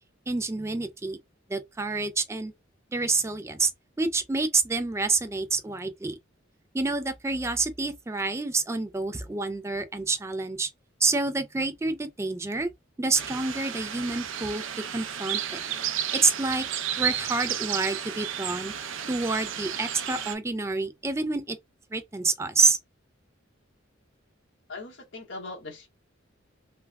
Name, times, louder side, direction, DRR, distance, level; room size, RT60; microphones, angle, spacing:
voice 1, 0.3-1.2 1.5-2.5 2.9-3.7 4.0-6.2 6.7-10.7 11.0-12.7 13.0-14.6 14.9-15.6 16.1-16.7 17.0-18.7 19.1-21.6 21.9-22.8, right 3 dB, 15° right, 0.3 m, -28 dB
sound 1, 13.1-20.3, right 9 dB, 85° right, 0.5 m, -32 dB
voice 2, 24.7-25.9, left 3 dB, 70° left, 1.3 m, -40 dB
3.4 x 2.1 x 2.2 m
head